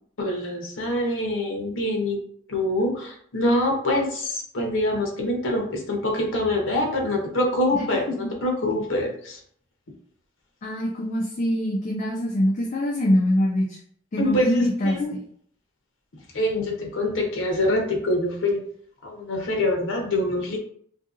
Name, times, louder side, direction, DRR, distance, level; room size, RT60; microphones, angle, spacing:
voice 1, 0.2-2.2 2.5-9.4 14.2-15.1 16.3-18.6 19.0-20.6, left 1 dB, 80° left, 2 dB, 0.7 m, -25 dB
voice 2, 7.7-8.3 10.6-13.8 14.1-15.0, equal, 40° left, -2 dB, 0.4 m, -24 dB
2.7 x 2.6 x 2.4 m, 0.62 s
head